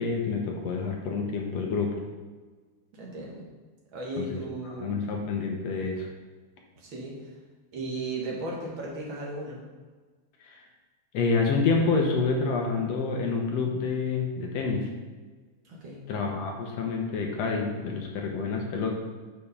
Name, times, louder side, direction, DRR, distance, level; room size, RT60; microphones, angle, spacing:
voice 1, 0.0-2.0 4.2-6.1 10.5-10.6 11.1-14.9 16.1-19.0, left 4 dB, 65° left, 1 dB, 1.9 m, -28 dB
voice 2, 3.0-3.5 3.9-4.9 6.8-7.1 7.7-9.6 15.7-16.0, right 2 dB, 50° right, -3 dB, 2.0 m, -35 dB
6.9 x 5.1 x 5.0 m, 1.4 s
omnidirectional pair, 3.4 m